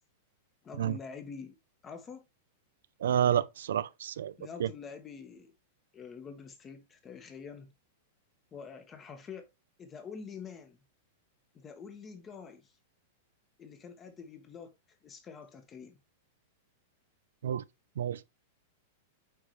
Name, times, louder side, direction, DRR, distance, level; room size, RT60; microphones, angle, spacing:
voice 1, 0.6-1.6 1.8-2.2 4.4-5.5 5.9-7.7 8.5-9.5 9.8-10.8 11.5-12.7 13.6-16.0, left 6 dB, 20° left, 1.5 m, -46 dB
voice 2, 3.0-4.3 4.6-4.7 17.4-17.6 18.0-18.2, right 9 dB, 85° right, 0.5 m, -29 dB
8.5 x 4.9 x 3.2 m
supercardioid pair, 150°, 0 cm